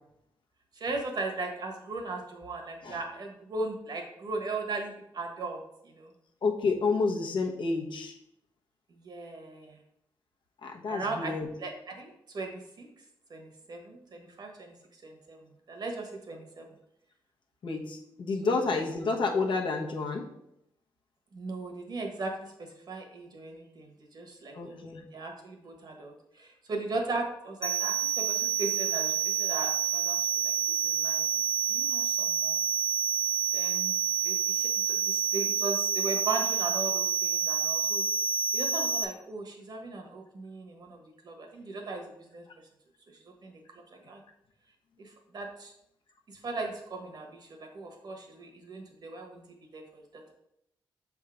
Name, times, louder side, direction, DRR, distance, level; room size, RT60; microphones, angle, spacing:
voice 1, 0.7-6.1 8.9-9.8 10.9-11.3 11.6-12.9 13.3-14.7 15.0-15.4 15.7-16.7 18.4-18.6 21.3-24.8 25.1-31.2 31.7-32.6 33.5-33.9 34.2-38.1 38.5-42.4 43.4-43.6 43.9-44.2 45.0-45.7 46.3-50.2, right 3 dB, 50° right, 3 dB, 1.3 m, -38 dB
voice 2, 6.4-8.1 10.6-11.5 17.6-20.3 24.5-25.0, left 4 dB, 65° left, 1 dB, 1.1 m, -29 dB
sound 1, 27.6-39.0, right 7 dB, 10° left, 0.5 m, -28 dB
6.7 x 3.7 x 4.9 m, 0.79 s
wide cardioid pair, 130°, 9 cm